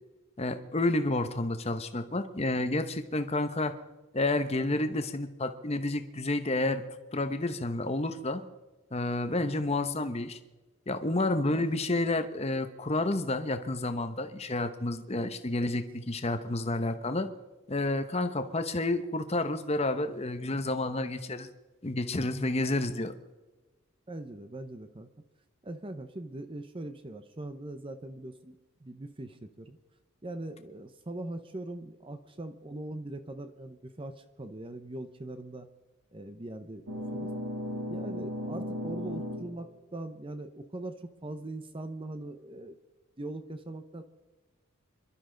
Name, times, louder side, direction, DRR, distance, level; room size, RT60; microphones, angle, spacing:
voice 1, 0.4-3.7 4.1-6.8 7.1-8.4 8.9-10.4 10.9-17.3 17.7-21.5 21.8-23.1, left 2 dB, 30° left, 9 dB, 0.9 m, -30 dB
voice 2, 11.3-11.7 15.5-15.8 24.1-25.1 25.6-29.8 30.2-35.7 36.1-37.3 37.9-42.8 43.2-44.0, right 1 dB, 25° right, 9 dB, 0.7 m, -41 dB
sound 1, 36.9-39.6, left 1 dB, 65° right, 2.7 m, -36 dB
27.5 x 12.0 x 3.9 m, 1.2 s
head